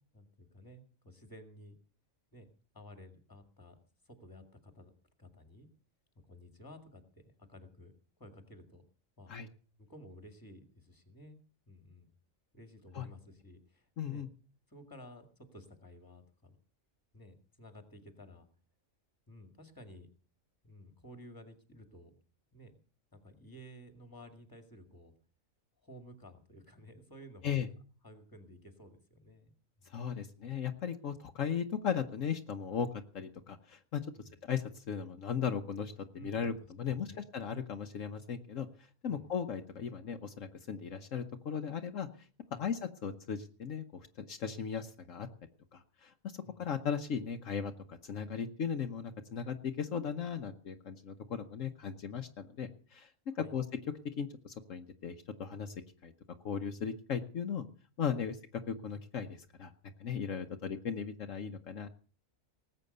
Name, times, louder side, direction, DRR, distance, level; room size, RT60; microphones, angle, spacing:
voice 1, 0.1-1.8 2.3-2.5 2.7-3.8 4.1-4.9 5.2-5.7 6.3-7.9 8.2-8.8 9.2-9.3 9.8-11.4 11.7-12.1 12.5-14.3 14.7-16.6 17.1-18.5 19.3-20.1 20.6-22.2 22.5-22.8 23.1-25.1 25.8-27.7 28.0-30.3 34.1-34.4 36.1-36.6 36.9-37.3 39.1-39.3 42.5-42.7 46.4-46.7 53.3-53.6, left 1 dB, 15° left, 7 dB, 2.2 m, -54 dB
voice 2, 14.0-14.3 27.4-27.7 29.9-32.9 33.1-34.0 34.4-36.5 36.8-38.7 39.0-42.1 42.6-45.3 45.7-53.1 53.4-53.7 54.2-55.7 56.0-56.1 56.4-57.7 58.0-58.4 58.7-59.7 60.0-61.9, left 7 dB, 65° left, 6 dB, 1.3 m, -37 dB
19.0 x 8.3 x 6.7 m, 0.40 s
omnidirectional pair, 1.4 m